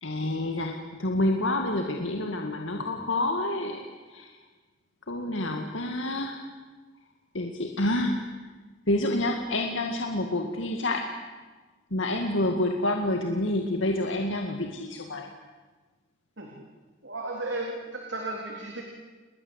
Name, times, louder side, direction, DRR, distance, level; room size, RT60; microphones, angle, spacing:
voice 1, 0.0-3.8 4.1-4.3 5.1-6.4 7.3-8.2 8.9-11.1 11.9-15.3, left 1 dB, 75° left, 3 dB, 2.2 m, -28 dB
voice 2, 17.0-18.8, right 2 dB, 65° right, 0 dB, 3.8 m, -34 dB
30.0 x 21.5 x 8.3 m, 1.3 s
head